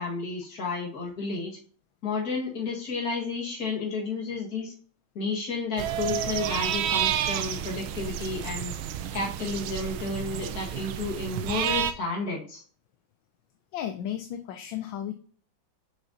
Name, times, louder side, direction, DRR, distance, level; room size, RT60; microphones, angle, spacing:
voice 1, 0.0-1.5 2.0-4.7 5.2-8.7 9.1-12.6, left 3 dB, 50° left, -1 dB, 2.2 m, -31 dB
sound 1, 5.8-11.9, right 10 dB, 90° right, 1.4 m, -30 dB
voice 2, 13.7-15.1, left 10 dB, 80° left, 8 dB, 1.3 m, -34 dB
6.4 x 6.3 x 2.8 m, 0.43 s
omnidirectional pair, 2.1 m